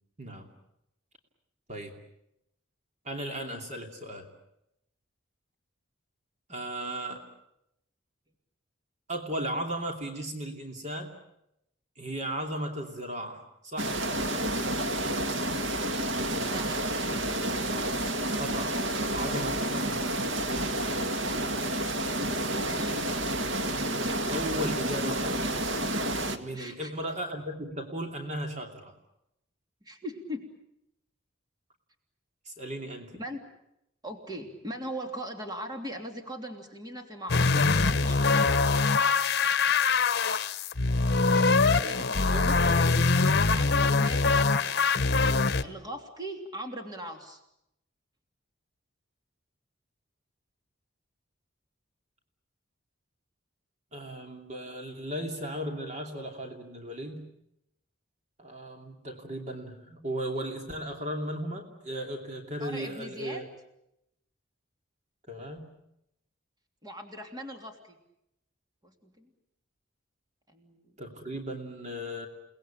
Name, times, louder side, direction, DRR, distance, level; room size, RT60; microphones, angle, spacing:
voice 1, 0.2-0.5 1.7-2.0 3.0-4.3 6.5-7.2 9.1-11.1 12.0-14.5 18.3-18.8 19.1-20.1 24.3-25.7 26.2-28.9 32.4-33.2 42.1-42.5 53.9-57.3 58.4-63.4 65.3-65.8 71.0-72.3, right 1 dB, 40° right, 3 dB, 2.9 m, -36 dB
sound 1, 13.8-26.4, right 1 dB, 85° right, 2.0 m, -30 dB
voice 2, 16.5-16.9 22.6-23.1 26.5-26.9 29.8-30.4 33.1-33.4 34.0-38.6 41.8-44.8 45.6-47.4 62.6-63.4 66.8-68.0 68.8-69.3 70.5-70.9, equal, 20° right, 3 dB, 3.1 m, -40 dB
sound 2, 37.3-45.6, left 4 dB, 55° left, 1.2 m, -23 dB
30.0 x 19.5 x 8.9 m, 0.83 s
head